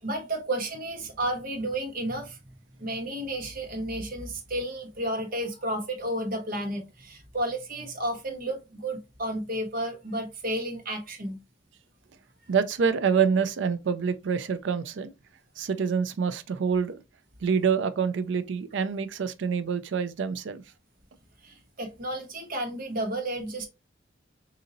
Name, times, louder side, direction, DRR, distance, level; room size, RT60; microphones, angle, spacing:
voice 1, 0.0-2.4 2.8-11.4 21.4-23.7, right 1 dB, 50° right, 1.0 m, -32 dB
voice 2, 12.5-15.1 15.6-17.0 17.4-20.6, right 6 dB, 70° right, 0.4 m, -26 dB
3.9 x 2.7 x 2.6 m
head